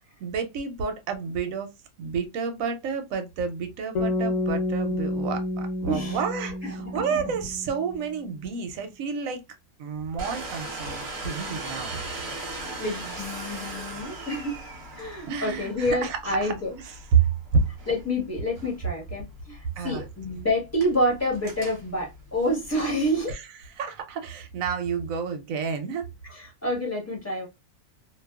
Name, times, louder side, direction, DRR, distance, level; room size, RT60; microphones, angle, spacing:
voice 1, 0.2-1.7 2.0-9.4 9.8-12.0 15.3-16.5 16.8-17.6 19.8-20.0 23.3-26.1, right 6 dB, 70° right, 0.9 m, -29 dB
sound 1, 3.9-8.2, left 1 dB, 85° left, 1.2 m, -30 dB
voice 2, 5.9-6.2 6.6-7.3 12.8-14.6 14.9-16.7 17.9-23.3 26.2-27.5, left 1 dB, 10° left, 1.0 m, -28 dB
Domestic sounds home sounds, 10.2-23.3, right 2 dB, 40° right, 0.8 m, -39 dB
2.6 x 2.3 x 2.2 m
omnidirectional pair, 1.6 m